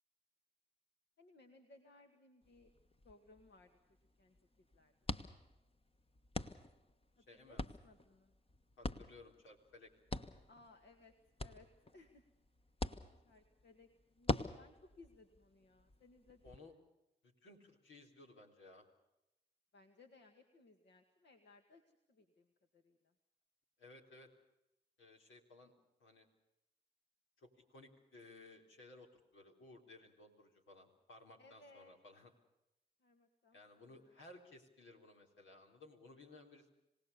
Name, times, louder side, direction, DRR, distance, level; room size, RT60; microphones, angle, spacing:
voice 1, 1.2-2.7 3.0-3.8 4.2-4.9 7.3-8.3 10.5-12.2 13.2-16.8 19.7-23.1 31.4-31.9 33.0-34.2, left 3 dB, 60° left, 5 dB, 2.0 m, -64 dB
sound 1, 2.4-16.6, left 2 dB, 30° left, 1.4 m, -46 dB
voice 2, 7.3-7.6 8.8-9.9 16.4-16.7 17.2-18.9 23.8-24.3 25.0-25.7 26.0-26.3 27.4-32.3 33.5-36.7, left 2 dB, 80° left, 2 dB, 3.9 m, -59 dB
27.0 x 18.0 x 6.9 m, 0.90 s
supercardioid pair, 50°, 20 cm